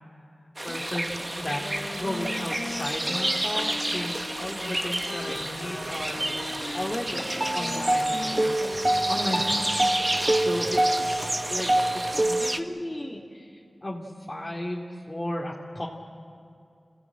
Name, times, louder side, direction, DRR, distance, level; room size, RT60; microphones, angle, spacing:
voice 1, 0.6-1.6 1.9-6.3 6.7-7.2 7.5-8.5 9.1-15.9, left 1 dB, 25° left, -3 dB, 2.7 m, -34 dB
sound 1, 0.6-12.6, right 1 dB, 30° right, 1.3 m, -27 dB
Wind instrument woodwind instrument, 1.4-9.6, left 3 dB, 75° left, 1.6 m, -39 dB
sound 2, 5.3-12.2, right 1 dB, 70° right, 4.3 m, -43 dB
26.5 x 17.0 x 8.9 m, 2.5 s
cardioid pair, 40°, 0 cm